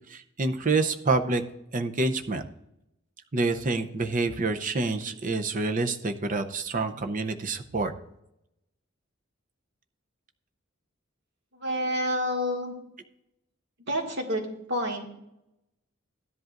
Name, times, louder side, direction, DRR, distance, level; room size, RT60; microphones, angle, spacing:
voice 1, 0.1-1.4 1.7-2.4 3.3-7.9, right 3 dB, 40° right, 7 dB, 0.7 m, -27 dB
voice 2, 11.6-12.7 13.9-14.4 14.7-15.1, equal, 60° right, 0 dB, 2.1 m, -28 dB
15.0 x 10.5 x 2.6 m, 0.84 s
head